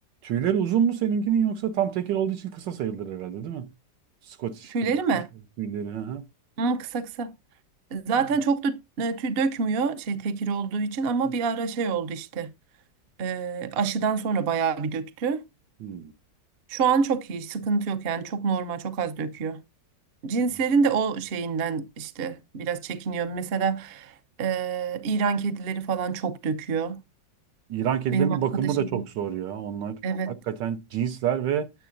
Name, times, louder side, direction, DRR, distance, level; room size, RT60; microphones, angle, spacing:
voice 1, 0.2-3.7 4.3-4.9 5.6-6.2 15.8-16.1 27.7-30.0 30.3-31.7, right 9 dB, 80° right, 1.5 m, -27 dB
voice 2, 4.7-5.3 6.6-7.3 7.9-12.5 13.2-15.4 16.7-19.6 20.2-27.0 28.1-29.1 30.0-30.4, right 5 dB, 60° right, 0.6 m, -27 dB
9.3 x 9.0 x 2.5 m
omnidirectional pair, 1.9 m